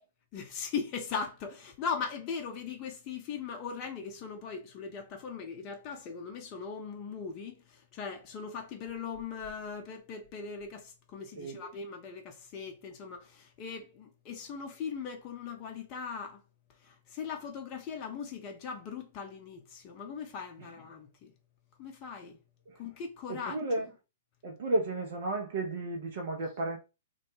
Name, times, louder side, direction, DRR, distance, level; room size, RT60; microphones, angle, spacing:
voice 1, 0.3-16.4 16.8-21.3 21.8-22.4 22.8-23.6, left 6 dB, 35° left, 0.5 m, -39 dB
voice 2, 23.3-23.9 24.4-26.8, right 2 dB, 55° right, 0.5 m, -33 dB
2.2 x 2.1 x 3.1 m
figure-of-eight pair, 110°, 0 cm